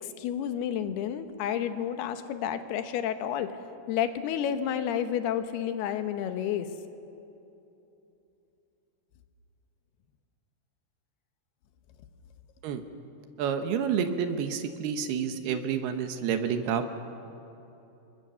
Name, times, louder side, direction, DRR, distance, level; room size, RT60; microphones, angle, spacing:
voice 1, 0.0-3.5 3.9-6.7, left 9 dB, 80° left, 9 dB, 3.1 m, -30 dB
voice 2, 13.4-16.8, right 7 dB, 80° right, 8 dB, 3.2 m, -29 dB
29.0 x 21.5 x 6.8 m, 2.9 s
omnidirectional pair, 4.6 m